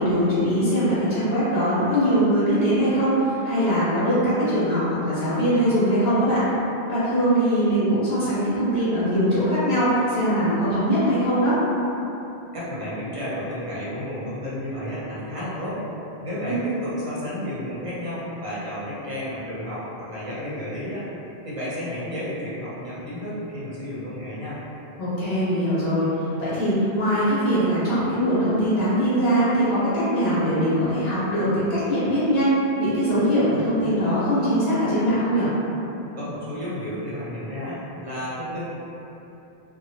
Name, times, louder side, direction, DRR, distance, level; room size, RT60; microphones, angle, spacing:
voice 1, 0.0-6.4 6.9-11.6 16.5-16.6 25.0-35.5, equal, 70° left, -12 dB, 1.3 m, -21 dB
voice 2, 12.5-15.8 16.2-21.1 21.4-24.6 36.1-38.6, equal, 35° right, -10 dB, 0.8 m, -32 dB
2.8 x 2.3 x 2.8 m, 3.0 s
omnidirectional pair, 1.1 m